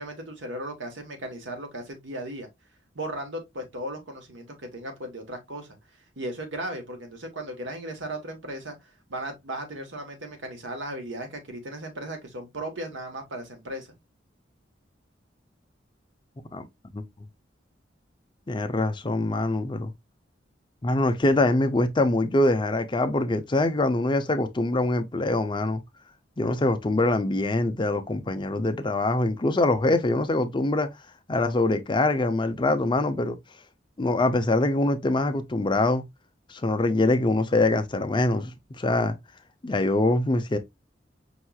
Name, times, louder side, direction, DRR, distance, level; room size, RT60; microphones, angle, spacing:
voice 1, 0.0-2.5 2.9-5.8 6.2-13.9, right 1 dB, 80° right, 1.3 m, -36 dB
voice 2, 18.5-19.9 20.8-25.8 26.4-30.9 31.3-33.4 34.0-36.0 36.5-38.5 38.8-39.2 39.6-40.6, left 2 dB, 25° left, 0.5 m, -24 dB
5.5 x 3.0 x 2.3 m
head